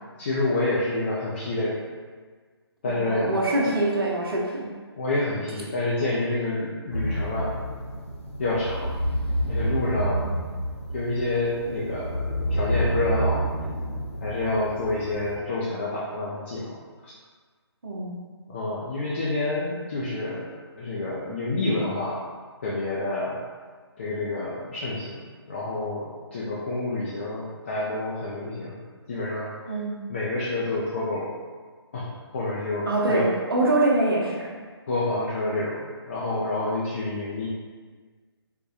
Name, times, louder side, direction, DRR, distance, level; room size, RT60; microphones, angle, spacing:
voice 1, 0.2-1.8 2.8-3.3 3.6-3.7 5.0-7.6 8.4-8.9 9.5-10.3 10.9-13.4 14.2-16.7 17.0-17.1 18.5-20.5 20.7-22.2 22.6-23.4 24.0-25.2 25.5-28.8 29.1-29.5 30.1-31.3 31.9-32.1 32.3-33.3 34.9-35.8 36.1-37.5, left 2 dB, 25° left, -7 dB, 0.4 m, -28 dB
voice 2, 2.8-4.7 10.1-10.4 17.8-18.2 29.7-30.0 32.8-34.5, right 2 dB, 60° right, -4 dB, 0.8 m, -24 dB
sound 1, 6.9-15.4, right 1 dB, 90° left, 0.6 m, -29 dB
4.0 x 2.2 x 2.6 m, 1.5 s
figure-of-eight pair, 140°, 14 cm